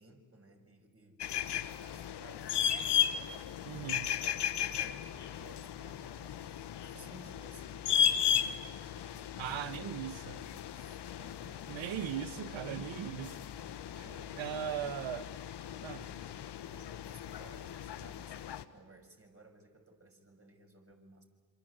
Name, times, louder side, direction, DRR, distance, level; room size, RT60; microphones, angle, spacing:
voice 1, 0.0-12.1 14.0-14.9 16.0-21.2, right 2 dB, 25° right, 6.8 m, -58 dB
sound 1, 1.2-18.6, left 9 dB, 55° left, 1.4 m, -36 dB
voice 2, 3.7-4.1 9.4-10.2 11.7-13.4 13.9-14.1 14.4-15.3 15.8-16.1, right 10 dB, 65° right, 1.4 m, -38 dB
27.0 x 26.0 x 8.3 m
supercardioid pair, 60°, 50 cm